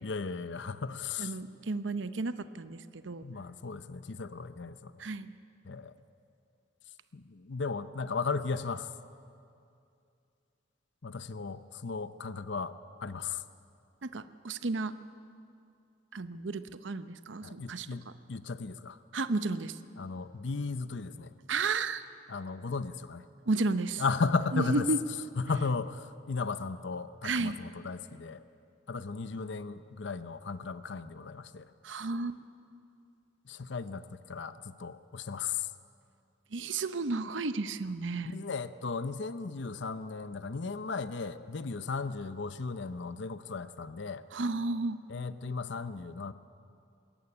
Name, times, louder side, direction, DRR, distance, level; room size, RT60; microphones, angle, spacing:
voice 1, 0.0-1.3 3.2-4.9 5.6-5.9 7.1-8.9 11.0-12.7 13.0-13.4 17.4-19.0 20.0-21.3 22.3-23.2 24.0-24.9 25.4-28.4 28.9-31.7 33.5-35.7 38.2-44.2 45.1-46.3, left 4 dB, 70° left, 13 dB, 0.7 m, -35 dB
voice 2, 1.2-3.2 5.0-5.3 14.0-14.9 16.1-18.1 19.1-19.8 21.5-22.0 23.5-24.0 24.5-25.0 27.2-27.6 31.8-32.4 36.5-38.4 44.3-45.0, right 3 dB, 75° right, 12 dB, 0.8 m, -32 dB
20.5 x 15.5 x 9.8 m, 2.5 s
head